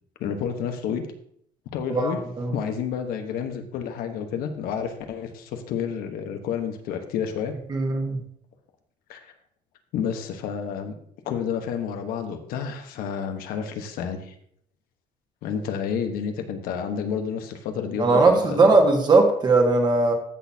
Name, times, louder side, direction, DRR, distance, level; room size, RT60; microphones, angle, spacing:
voice 1, 0.2-1.1 1.7-2.2 2.5-7.5 9.1-9.2 9.9-10.9 11.2-14.3 15.4-18.7, left 7 dB, 90° left, 6 dB, 1.2 m, -30 dB
voice 2, 1.9-2.5 7.7-8.2 18.0-20.1, right 3 dB, 30° right, 3 dB, 1.6 m, -19 dB
14.5 x 6.3 x 2.8 m, 0.67 s
cardioid pair, 160°, 15 cm